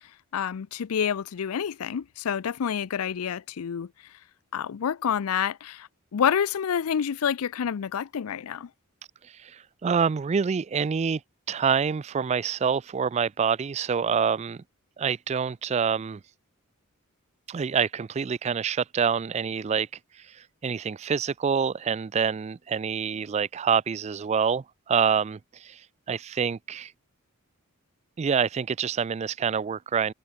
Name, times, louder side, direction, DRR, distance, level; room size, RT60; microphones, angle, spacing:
voice 1, 0.3-3.9 4.5-8.7, left 8 dB, 80° left, 0.4 m, -28 dB
voice 2, 9.4-11.2 11.5-14.6 15.0-16.2 17.5-19.9 20.3-25.8 26.1-26.9 28.2-30.1, right 6 dB, 30° right, 0.3 m, -26 dB
head